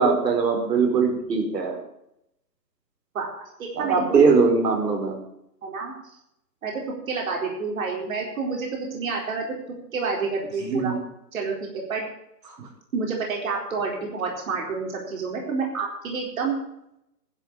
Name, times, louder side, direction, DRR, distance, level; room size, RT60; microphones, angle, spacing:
voice 1, 0.0-1.8 3.8-5.2 10.6-11.0, right 4 dB, 75° right, 3 dB, 4.8 m, -21 dB
voice 2, 3.6-4.3 5.6-5.9 6.6-6.7 7.1-9.4 9.9-10.9 11.3-12.0 12.9-16.5, right 4 dB, 55° right, 0 dB, 4.2 m, -29 dB
11.5 x 10.0 x 7.2 m, 0.80 s
hypercardioid pair, 165°, 50 cm